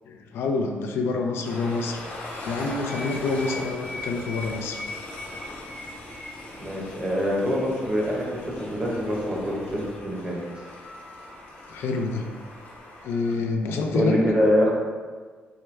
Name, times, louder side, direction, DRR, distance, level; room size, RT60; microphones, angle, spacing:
voice 1, 0.1-4.8 11.7-12.3 13.0-14.2, left 3 dB, 80° left, 3 dB, 0.4 m, -27 dB
Train, 1.4-13.3, left 2 dB, 60° left, 1.0 m, -41 dB
sound 1, 2.9-10.0, left 2 dB, 5° left, 0.4 m, -41 dB
voice 2, 6.6-10.4 13.9-14.7, equal, 20° right, -4 dB, 0.8 m, -25 dB
4.6 x 2.2 x 3.1 m, 1.5 s
cardioid pair, 155°, 4 cm